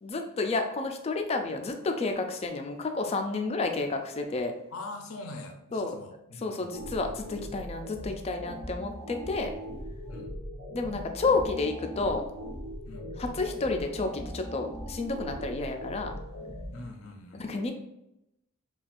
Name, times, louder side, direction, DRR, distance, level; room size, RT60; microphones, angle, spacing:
voice 1, 0.0-4.5 5.7-5.9 6.4-9.5 10.7-12.2 13.2-16.2 17.5-17.7, left 3 dB, 30° left, 5 dB, 0.4 m, -30 dB
voice 2, 4.7-6.7 10.1-10.4 12.9-13.1 16.7-17.5, left 2 dB, 80° left, 4 dB, 0.6 m, -43 dB
sound 1, 6.7-16.7, equal, 55° right, 1.2 m, -40 dB
4.1 x 2.3 x 2.5 m, 0.85 s
head